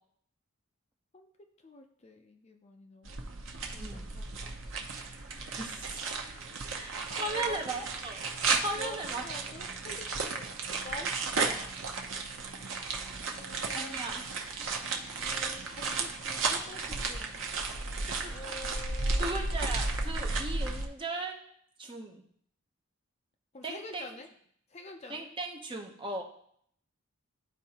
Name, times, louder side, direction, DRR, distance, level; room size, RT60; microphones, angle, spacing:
voice 1, 1.6-3.2 3.7-4.5 6.7-7.9 8.7-10.6 10.8-11.8 13.4-14.0 15.2-17.4 18.2-19.4 23.5-24.3 24.7-25.3, left 2 dB, 30° left, 4 dB, 0.5 m, -47 dB
sound 1, 3.0-20.8, right 4 dB, 60° right, 0.7 m, -34 dB
voice 2, 3.8-4.1 5.6-6.1 6.7-8.2 8.6-9.2 13.7-14.2 18.1-18.4 19.2-21.4 21.8-22.2 23.6-24.2 25.1-26.2, right 2 dB, 20° right, 2 dB, 0.7 m, -37 dB
12.0 x 4.4 x 2.9 m, 0.66 s
head